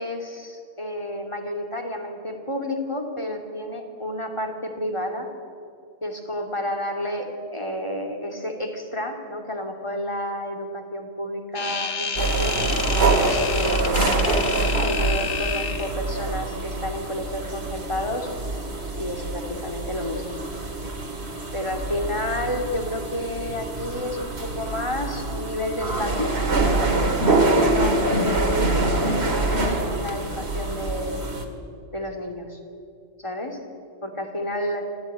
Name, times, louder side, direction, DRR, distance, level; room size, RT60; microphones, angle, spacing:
voice 1, 0.0-5.3 6.0-12.6 13.1-14.4 14.8-18.3 19.0-20.3 21.5-26.4 27.6-31.2 31.9-32.6 33.2-33.6 34.0-34.8, left 1 dB, 25° left, 3 dB, 2.6 m, -30 dB
sound 1, 11.6-16.0, left 5 dB, 75° left, 1.6 m, -29 dB
sound 2, 12.2-31.5, right 2 dB, 65° right, 2.4 m, -25 dB
25.0 x 15.0 x 9.0 m, 2.5 s
omnidirectional pair, 1.2 m